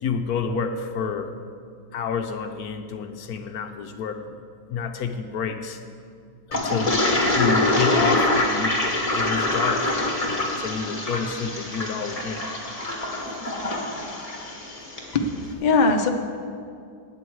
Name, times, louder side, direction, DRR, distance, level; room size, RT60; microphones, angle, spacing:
voice 1, 0.0-1.3 1.9-4.4 4.7-5.8 6.5-8.8 9.1-9.9 10.3-12.5, left 6 dB, 70° left, 7 dB, 1.1 m, -29 dB
Toilet flush, 6.5-15.1, left 2 dB, 20° left, 1.6 m, -25 dB
voice 2, 15.1-16.1, left 3 dB, 45° left, 4 dB, 0.6 m, -21 dB
18.5 x 8.7 x 4.7 m, 2.4 s
omnidirectional pair, 1.9 m